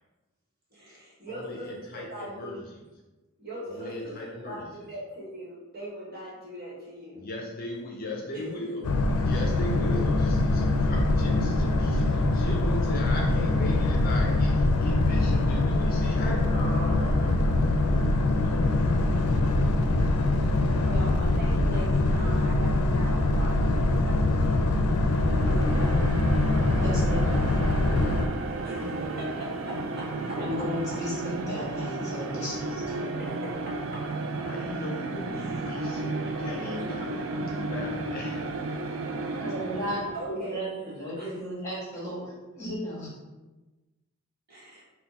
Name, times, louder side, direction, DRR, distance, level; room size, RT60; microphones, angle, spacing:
voice 1, 0.7-2.5 3.4-7.2 8.3-8.4 20.8-24.3 25.3-26.1 28.6-30.4 33.4-34.0 35.3-35.6 40.1-40.6 41.2-41.3 44.5-44.8, equal, 45° right, -6 dB, 1.3 m, -40 dB
voice 2, 1.3-2.7 3.7-4.9 7.1-18.1 18.3-18.7 34.4-38.6, left 2 dB, 40° left, -1 dB, 0.5 m, -38 dB
Boat Water vehicle, 8.8-28.3, left 2 dB, 90° left, 0.5 m, -23 dB
sound 1, 25.0-40.3, right 2 dB, 65° right, 0.4 m, -33 dB
voice 3, 26.8-27.4 30.4-33.1 39.4-43.1, equal, 15° left, -8 dB, 1.4 m, -34 dB
4.2 x 2.2 x 4.1 m, 1.1 s
head